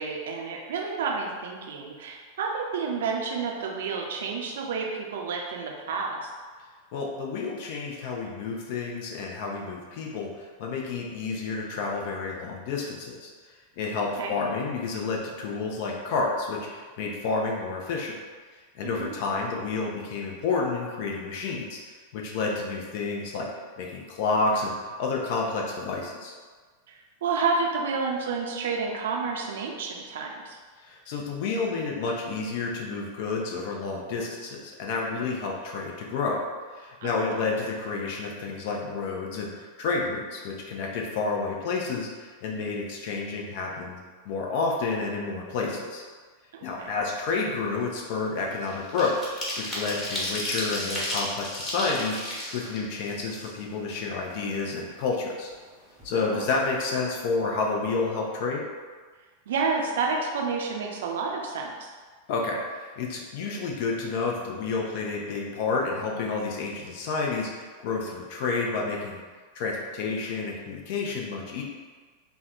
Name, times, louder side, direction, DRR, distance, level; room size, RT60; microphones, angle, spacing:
voice 1, 0.0-6.3 14.2-14.4 18.8-19.1 26.9-30.6 37.0-37.4 46.5-47.0 56.1-56.5 59.5-61.9, right 4 dB, 60° right, 0 dB, 0.5 m, -30 dB
voice 2, 6.9-13.3 13.8-18.1 18.8-21.8 22.1-23.5 23.8-26.3 30.8-36.4 36.8-39.5 39.8-44.0 44.2-46.0 46.6-55.5 56.0-58.6 62.3-69.2 69.5-71.6, left 4 dB, 50° left, -1 dB, 0.6 m, -30 dB
sound 1, 46.9-47.2 47.5-53.9 54.3-54.4 54.7-55.7 56.0-56.1 56.4-56.7, left 1 dB, 20° left, 1.3 m, -34 dB
3.4 x 2.2 x 4.2 m, 1.5 s
figure-of-eight pair, 90°, 0 cm